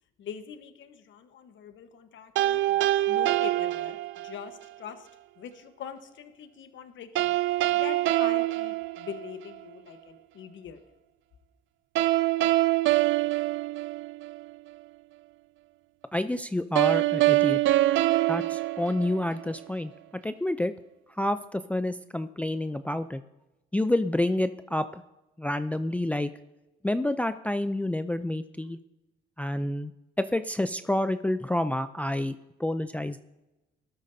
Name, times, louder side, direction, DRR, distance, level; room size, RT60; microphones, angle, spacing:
voice 1, 0.2-2.8 3.1-4.0 4.2-5.1 5.4-10.8, left 8 dB, 70° left, 8 dB, 1.2 m, -43 dB
sound 1, 2.4-4.5 7.2-9.6 12.0-14.5 16.8-19.6, right 16 dB, 75° right, 0.4 m, -25 dB
voice 2, 16.1-17.6 18.3-19.9 20.2-20.7 21.1-23.2 23.7-25.0 25.4-26.3 26.8-28.8 29.4-29.9 30.2-33.2, left 1 dB, 5° left, 10 dB, 0.4 m, -28 dB
19.0 x 12.5 x 2.7 m, 1.0 s
cardioid pair, 90°, 20 cm